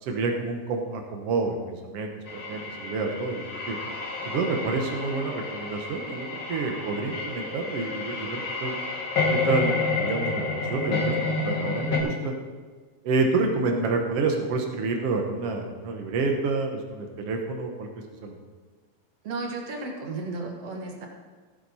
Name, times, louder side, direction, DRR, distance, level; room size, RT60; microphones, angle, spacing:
voice 1, 0.0-3.8 4.2-8.7 9.3-12.3 13.0-17.9 18.2-18.4, right 3 dB, 75° right, 2 dB, 1.3 m, -28 dB
sound 1, 2.3-12.0, left 3 dB, 45° left, 1.7 m, -30 dB
voice 2, 19.2-21.1, right 3 dB, 55° right, 1 dB, 1.9 m, -34 dB
16.0 x 10.0 x 4.2 m, 1.4 s
omnidirectional pair, 4.5 m